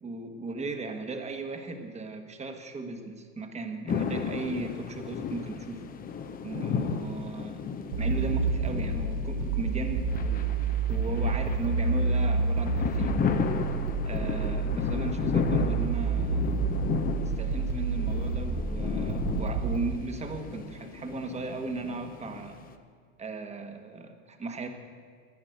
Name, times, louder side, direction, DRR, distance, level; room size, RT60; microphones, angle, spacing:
voice 1, 0.0-5.8 6.4-7.6 8.0-10.5 10.9-13.2 14.0-16.6 17.2-22.6 23.2-24.7, right 3 dB, 15° right, 6 dB, 1.3 m, -36 dB
sound 1, 3.9-22.7, left 6 dB, 20° left, 0.7 m, -34 dB
sound 2, 7.9-19.9, right 4 dB, 65° right, 1.5 m, -29 dB
10.5 x 10.5 x 7.9 m, 2.1 s
hypercardioid pair, 115°, 40 cm